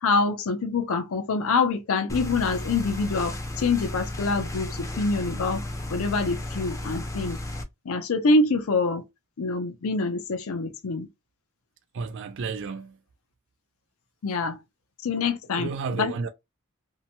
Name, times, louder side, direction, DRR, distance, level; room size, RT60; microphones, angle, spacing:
voice 1, 0.0-5.6 5.9-7.4 7.9-9.0 9.4-11.1 14.2-14.6 15.0-16.1, left 3 dB, 70° left, 0.5 m, -25 dB
sound 1, 2.1-7.6, left 1 dB, 15° left, 0.5 m, -34 dB
voice 2, 11.9-12.9 15.6-16.3, right 5 dB, 60° right, 0.4 m, -31 dB
2.8 x 2.1 x 2.7 m
head